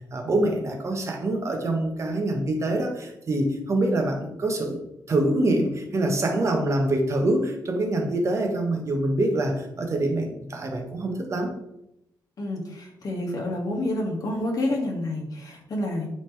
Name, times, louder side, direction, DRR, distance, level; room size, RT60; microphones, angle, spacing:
voice 1, 0.1-4.8 5.1-11.5, right 1 dB, 40° right, 2 dB, 1.4 m, -25 dB
voice 2, 12.4-16.1, left 1 dB, 55° left, -1 dB, 2.2 m, -29 dB
9.5 x 4.0 x 3.5 m, 0.84 s
cardioid pair, 120°, 7 cm